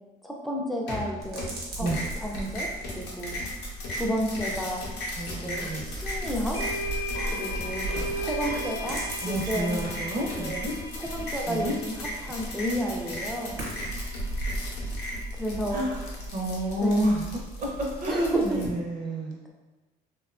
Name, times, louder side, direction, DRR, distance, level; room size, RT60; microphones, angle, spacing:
voice 1, 0.2-3.4 3.9-4.8 5.3-6.6 7.3-7.9 8.2-9.8 10.4-10.7 11.0-13.6 15.3-15.9 16.8-17.0 18.1-18.7, equal, ahead, -1 dB, 0.4 m, -31 dB
sound 1, 0.9-1.6 1.9-18.7, left 1 dB, 80° left, 0.6 m, -37 dB
sound 2, 1.2-18.6, right 1 dB, 80° right, 1.0 m, -38 dB
voice 2, 5.2-5.9 9.2-10.7 11.5-11.7 15.7-16.0 16.3-19.5, right 1 dB, 50° right, -2 dB, 0.6 m, -29 dB
sound 3, 5.6-5.7 6.5-14.6, right 1 dB, 25° left, 0.8 m, -37 dB
2.7 x 2.2 x 2.4 m, 1.1 s
cardioid pair, 110°, 17 cm